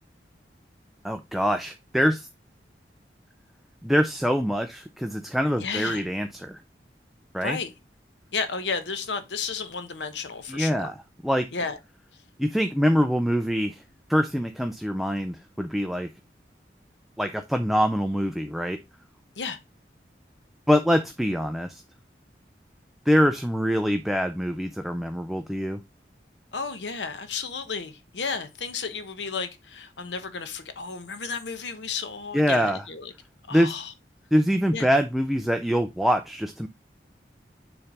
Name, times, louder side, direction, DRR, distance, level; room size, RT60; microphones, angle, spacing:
voice 1, 1.0-2.3 3.8-6.6 7.3-7.6 10.5-10.9 11.2-11.5 12.4-13.8 14.1-16.1 17.2-18.8 20.7-21.8 23.1-25.8 32.3-32.8 33.5-33.7 34.3-36.7, equal, ahead, 0.4 m, -24 dB
voice 2, 5.6-6.0 7.4-7.7 8.3-10.9 11.5-11.8 19.4-19.6 26.5-33.1 33.5-33.9 34.7-34.9, left 5 dB, 85° left, 1.0 m, -32 dB
7.1 x 3.3 x 5.1 m
head